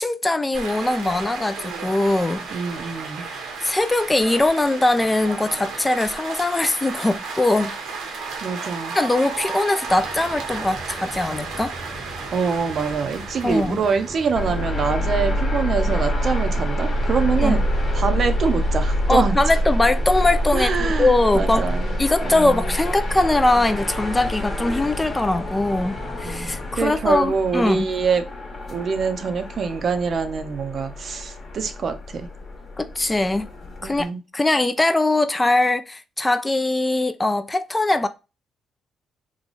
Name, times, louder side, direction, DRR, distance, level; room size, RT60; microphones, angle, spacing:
voice 1, 0.0-2.5 3.6-7.7 8.9-11.7 13.4-13.8 17.4-17.6 19.1-21.7 22.0-27.9 32.8-33.5 33.8-38.1, left 2 dB, 15° left, 0.3 m, -21 dB
sound 1, 0.5-14.8, right 4 dB, 80° right, 0.9 m, -33 dB
voice 2, 2.5-3.3 8.4-9.0 12.3-17.6 17.9-19.4 20.5-21.9 22.2-22.6 26.2-28.3 28.7-32.3 33.8-34.2, right 5 dB, 55° right, 0.6 m, -25 dB
sound 2, 9.8-26.8, equal, 5° right, 0.9 m, -39 dB
sound 3, 14.4-34.0, equal, 40° left, 1.1 m, -26 dB
3.1 x 2.2 x 4.0 m
cardioid pair, 90°, 0 cm